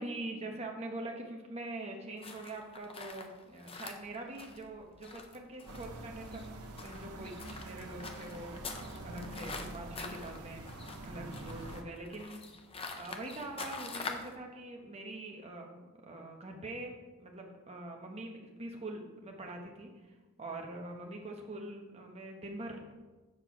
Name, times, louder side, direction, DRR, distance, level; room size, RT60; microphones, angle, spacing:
voice 1, 0.0-6.4 6.8-10.6 11.0-12.6 12.9-16.9 17.2-22.9, right 2 dB, 30° right, 1 dB, 1.0 m, -44 dB
sound 1, 2.2-14.4, left 4 dB, 25° left, 0.6 m, -46 dB
sound 2, 5.7-11.8, right 2 dB, 90° right, 0.9 m, -46 dB
7.5 x 4.5 x 5.9 m, 1.2 s
head